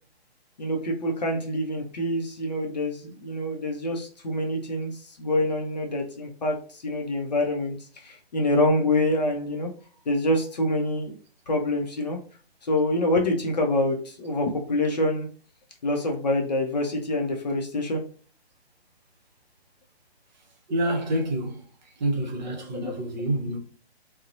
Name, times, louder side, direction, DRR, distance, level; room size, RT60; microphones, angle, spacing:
voice 1, 0.6-9.7 10.1-11.2 11.5-12.2 12.6-15.3 15.8-18.0 22.2-23.0, left 1 dB, 40° left, 0.5 m, -26 dB
voice 2, 20.7-21.6 22.0-23.6, right 1 dB, 40° right, 0.7 m, -27 dB
2.6 x 2.0 x 2.5 m
hypercardioid pair, 150°, 33 cm